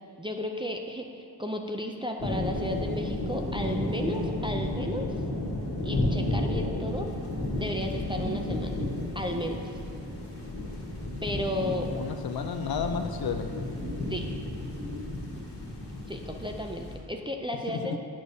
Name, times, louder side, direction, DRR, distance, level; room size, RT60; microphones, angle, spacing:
voice 1, 0.2-5.1 5.8-7.1 7.5-8.8 9.1-9.6 11.2-11.9 14.1-14.3 16.1-18.0, equal, 15° right, 2 dB, 0.4 m, -33 dB
sound 1, 2.2-17.0, left 1 dB, 35° left, 1.6 m, -32 dB
voice 2, 11.9-13.6 17.7-18.0, left 6 dB, 60° left, 6 dB, 0.6 m, -32 dB
8.9 x 6.3 x 2.7 m, 2.4 s
wide cardioid pair, 80°, 42 cm